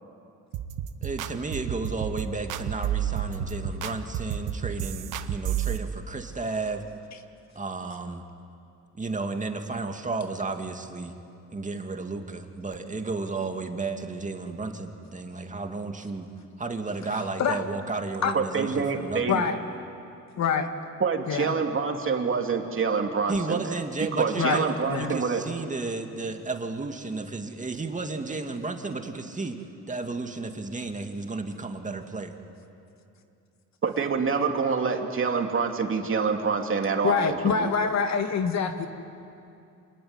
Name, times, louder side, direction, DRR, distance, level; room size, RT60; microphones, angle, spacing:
sound 1, 0.5-5.8, right 9 dB, 85° right, 1.3 m, -31 dB
voice 1, 1.0-6.8 7.6-8.2 8.9-11.1 11.5-16.3 16.6-19.5 23.3-29.6 29.9-32.4, right 3 dB, 25° right, 5 dB, 2.4 m, -33 dB
voice 2, 18.3-19.4 21.0-23.8 24.2-25.4 33.8-37.7, right 5 dB, 45° right, 3 dB, 2.9 m, -26 dB
voice 3, 19.3-19.6 20.4-20.7 21.3-21.5 24.4-24.6 24.9-25.1 37.0-38.9, left 6 dB, 65° left, 6 dB, 2.1 m, -25 dB
27.0 x 20.0 x 9.7 m, 2.7 s
cardioid pair, 90°, 30 cm